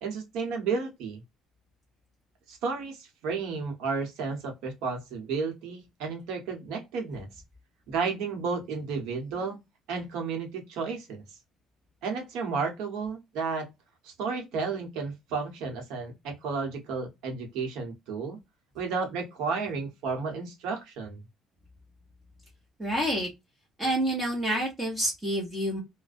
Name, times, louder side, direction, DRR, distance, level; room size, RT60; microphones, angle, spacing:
voice 1, 0.0-1.2 2.5-7.3 7.9-9.6 9.9-11.2 12.0-13.7 14.0-18.4 18.7-21.2, right 5 dB, 80° right, 0.9 m, -32 dB
voice 2, 22.8-23.3 23.8-25.8, right 1 dB, 10° right, 1.0 m, -28 dB
2.5 x 2.1 x 2.4 m
cardioid pair, 130°, 0 cm